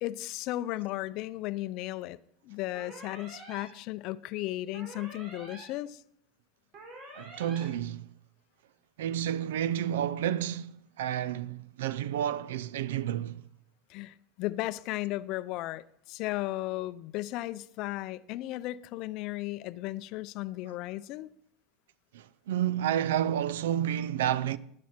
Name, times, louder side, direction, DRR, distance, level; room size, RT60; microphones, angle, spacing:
voice 1, 0.0-2.2 2.4-6.0 13.9-21.3, left 17 dB, 60° left, 0.4 m, -35 dB
sound 1, 2.7-3.6 4.7-5.6 6.7-7.6, right 2 dB, 50° right, 4.7 m, -47 dB
voice 2, 7.2-8.1 9.0-13.4 22.1-24.6, right 10 dB, 85° right, 0.4 m, -30 dB
10.5 x 10.5 x 4.3 m
supercardioid pair, 100°, 0 cm